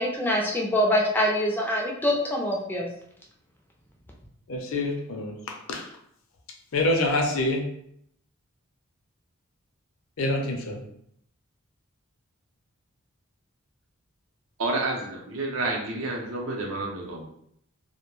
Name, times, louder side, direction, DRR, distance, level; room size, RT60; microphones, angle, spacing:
voice 1, 0.0-2.9, left 1 dB, 10° left, -1 dB, 0.3 m, -24 dB
voice 2, 4.5-5.9 6.7-7.7 10.2-10.8, left 2 dB, 70° left, 1 dB, 0.5 m, -26 dB
voice 3, 14.6-17.2, right 2 dB, 65° right, -1 dB, 0.6 m, -29 dB
2.2 x 2.1 x 3.0 m, 0.72 s
head